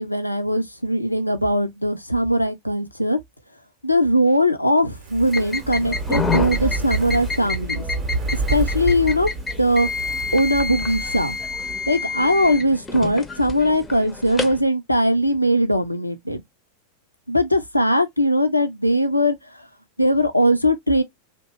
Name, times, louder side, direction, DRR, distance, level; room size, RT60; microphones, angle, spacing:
voice 1, 0.0-3.2 3.8-8.1 8.5-11.4 11.9-16.4 17.3-19.7 20.0-21.0, equal, 85° left, 0.5 m, -20 dB
Fire, 4.9-12.2 12.5-12.6, right 3 dB, 35° right, 0.7 m, -29 dB
sound 1, 5.3-14.6, left 4 dB, 15° left, 0.5 m, -29 dB
2.8 x 2.1 x 2.9 m
figure-of-eight pair, 90°, 0 cm